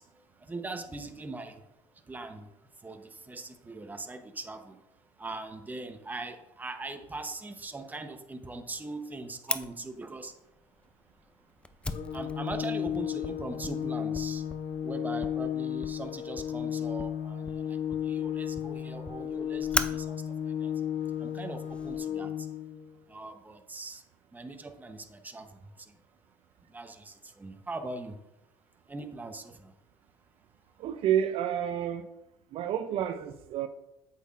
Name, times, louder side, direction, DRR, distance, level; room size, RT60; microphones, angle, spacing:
voice 1, 0.0-1.7 1.9-4.9 5.2-10.3 12.1-14.5 14.8-20.8 21.2-22.5 23.1-24.0 24.3-26.0 26.7-28.2 28.9-29.7, right 3 dB, 15° right, 0.8 m, -41 dB
Fire, 9.5-22.0, left 2 dB, 10° left, 0.4 m, -40 dB
Organ, 11.9-22.9, left 9 dB, 65° left, 0.5 m, -34 dB
voice 2, 30.8-32.1 32.5-33.7, right 10 dB, 60° right, 0.4 m, -29 dB
8.1 x 5.7 x 2.4 m
supercardioid pair, 85°, 11 cm